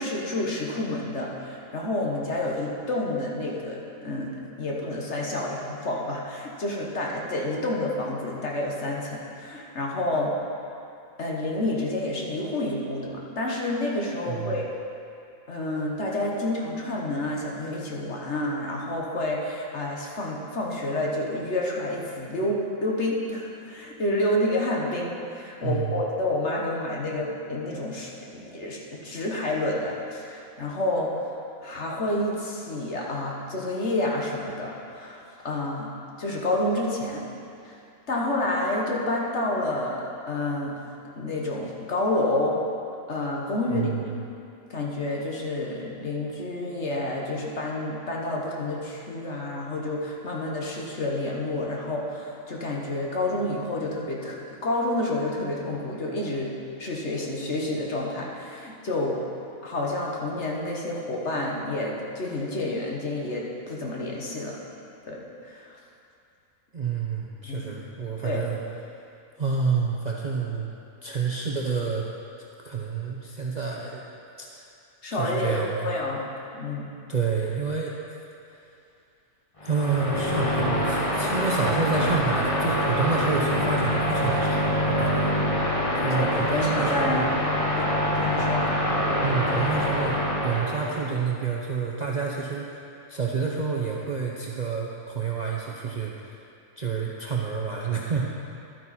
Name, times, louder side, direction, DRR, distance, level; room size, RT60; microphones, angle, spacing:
voice 1, 0.0-10.3 11.2-14.7 15.5-31.1 31.6-35.9 36.2-37.2 37.6-37.7 38.1-40.8 41.2-42.6 43.1-44.1 44.7-56.5 56.8-59.2 59.6-64.6 65.1-65.7 67.4-67.8 68.2-68.5 75.0-76.2 76.5-76.9 86.0-87.3 87.8-87.9 88.1-88.6, left 1 dB, 50° left, -2 dB, 1.5 m, -29 dB
voice 2, 14.3-14.6 25.6-26.0 43.7-44.2 66.7-68.6 69.4-70.7 71.0-72.1 72.6-74.0 74.4-74.6 75.1-75.9 77.1-77.9 79.6-85.3 85.9-87.3 89.2-92.8 93.1-96.4 96.8-98.2, right 5 dB, 40° right, -3 dB, 0.7 m, -29 dB
sound 1, 79.6-91.1, equal, 25° left, 1.2 m, -25 dB
11.5 x 9.1 x 4.3 m, 2.6 s
omnidirectional pair, 1.5 m